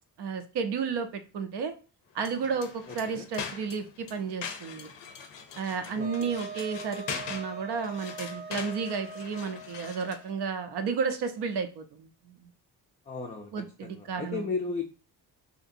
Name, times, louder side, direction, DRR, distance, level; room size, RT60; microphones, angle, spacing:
voice 1, 0.2-1.7 2.1-4.9 5.5-12.5 13.5-14.5, right 5 dB, 70° right, 8 dB, 0.6 m, -32 dB
sound 1, 2.2-10.3, left 7 dB, 85° left, 0.6 m, -42 dB
voice 2, 5.9-6.3 13.1-14.8, left 4 dB, 20° left, 1 dB, 0.3 m, -35 dB
Wind instrument woodwind instrument, 6.0-10.4, right 4 dB, 15° right, 0.7 m, -42 dB
2.8 x 2.5 x 2.5 m, 0.35 s
cardioid pair, 85°, 42 cm